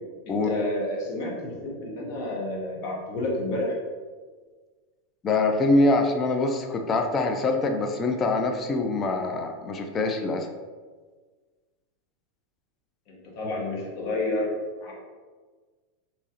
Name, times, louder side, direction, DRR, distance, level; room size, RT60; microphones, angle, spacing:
voice 1, 0.3-3.7 13.1-14.5 14.8-14.9, left 2 dB, 50° left, -3 dB, 1.1 m, -30 dB
voice 2, 5.2-10.5, left 2 dB, 25° left, 4 dB, 0.4 m, -24 dB
3.6 x 3.0 x 2.9 m, 1.4 s
supercardioid pair, 130°, 0 cm